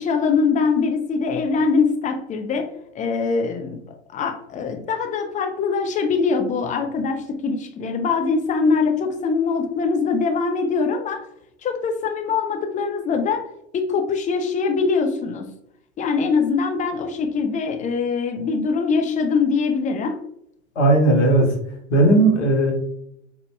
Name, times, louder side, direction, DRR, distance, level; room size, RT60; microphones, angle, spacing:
voice 1, 0.0-2.7 2.9-3.8 4.1-11.2 11.6-13.4 13.7-15.5 16.0-20.2, left 5 dB, 20° left, 5 dB, 0.5 m, -22 dB
voice 2, 20.8-21.5 21.9-22.7, right 2 dB, 70° left, 1 dB, 1.2 m, -16 dB
3.9 x 2.7 x 2.2 m, 0.72 s
figure-of-eight pair, 85°, 37 cm